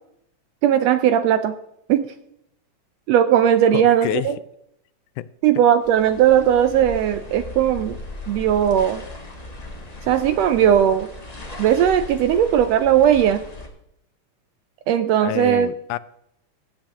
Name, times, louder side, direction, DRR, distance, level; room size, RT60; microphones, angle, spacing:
voice 1, 0.6-1.5 1.9-2.0 3.1-4.4 5.4-8.0 8.3-9.0 10.1-11.1 11.6-13.4 14.9-15.7, right 10 dB, 80° right, 1.5 m, -18 dB
voice 2, 3.7-4.3 5.2-5.3 15.2-16.0, left 14 dB, 90° left, 2.0 m, -27 dB
sound 1, 5.8-13.7, left 2 dB, 70° left, 0.3 m, -37 dB
16.5 x 8.7 x 2.9 m
omnidirectional pair, 3.4 m